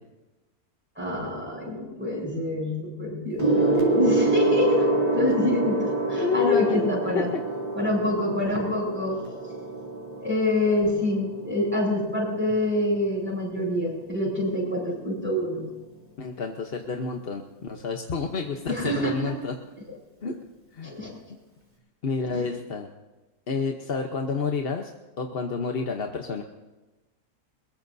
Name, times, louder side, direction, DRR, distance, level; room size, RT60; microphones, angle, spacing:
voice 1, 1.0-5.8 6.1-7.3 7.8-9.2 10.2-15.6 18.7-19.3 20.8-21.1 22.3-22.4, left 1 dB, 5° right, -5 dB, 7.7 m, -26 dB
Gong, 3.4-13.1 14.1-14.4, right 2 dB, 25° right, 3.5 m, -27 dB
voice 2, 6.2-7.2 16.2-19.5 20.2-20.4 20.7-21.0 22.0-22.9 23.5-24.9 25.2-26.4, left 5 dB, 45° left, 3 dB, 1.1 m, -29 dB
22.0 x 21.5 x 2.7 m, 1.1 s
omnidirectional pair, 1.6 m